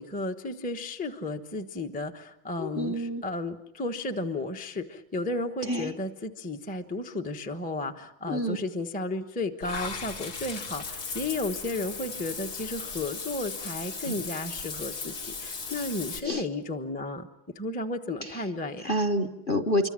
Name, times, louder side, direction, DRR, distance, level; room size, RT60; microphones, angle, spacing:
voice 1, 0.0-15.1 15.4-17.3 17.5-18.9, left 2 dB, 5° left, 4 dB, 0.6 m, -33 dB
voice 2, 2.6-3.2 5.7-5.9 8.3-8.6 14.1-14.2 16.2-16.4 18.8-19.9, equal, 35° left, 7 dB, 1.0 m, -28 dB
Water / Bathtub (filling or washing), 9.6-16.2, left 4 dB, 65° left, 3.2 m, -37 dB
26.5 x 24.5 x 7.5 m, 0.80 s
omnidirectional pair, 2.3 m